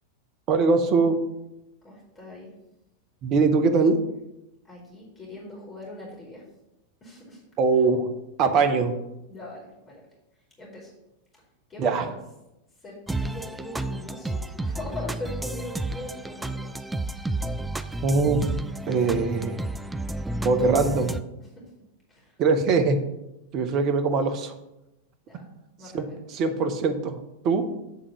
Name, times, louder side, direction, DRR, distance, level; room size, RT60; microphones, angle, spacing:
voice 1, 0.5-1.2 3.2-4.0 7.6-8.1 8.4-8.9 11.8-12.1 18.0-18.5 18.9-19.6 20.4-21.2 22.4-23.0 23.5-24.5 25.9-27.2 27.4-27.6, right 4 dB, 35° right, 8 dB, 0.9 m, -22 dB
voice 2, 1.8-2.5 4.6-6.4 7.0-7.4 9.3-10.0 10.6-10.9 11.7-11.9 12.8-16.7 21.4-21.7 22.1-22.3 25.2-25.4 25.8-26.2, left 2 dB, 20° left, -3 dB, 2.6 m, -41 dB
sound 1, 13.1-21.2, right 2 dB, 5° right, 0.4 m, -31 dB
8.3 x 3.7 x 6.8 m, 0.92 s
figure-of-eight pair, 90°, 0 cm